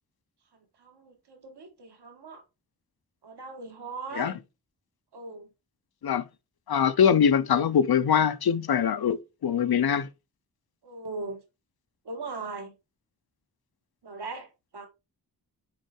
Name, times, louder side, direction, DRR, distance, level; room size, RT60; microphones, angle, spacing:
voice 1, 0.8-2.4 3.2-4.4 5.1-5.5 10.8-11.4 12.0-12.7 14.0-14.9, right 3 dB, 90° right, 1.8 m, -39 dB
voice 2, 6.7-10.1, left 7 dB, 70° left, 0.7 m, -23 dB
6.2 x 4.6 x 4.4 m
wide cardioid pair, 110°, 39 cm